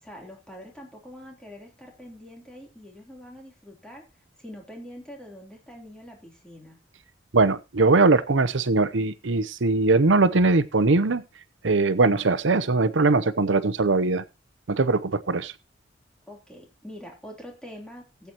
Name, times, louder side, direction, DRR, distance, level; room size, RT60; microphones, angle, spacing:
voice 1, 0.0-4.0 4.4-6.8 16.3-18.3, equal, 5° left, -1 dB, 3.4 m, -44 dB
voice 2, 7.3-11.2 11.6-14.2 14.7-15.5, right 3 dB, 85° right, 14 dB, 0.8 m, -21 dB
18.0 x 8.2 x 3.0 m, 0.26 s
head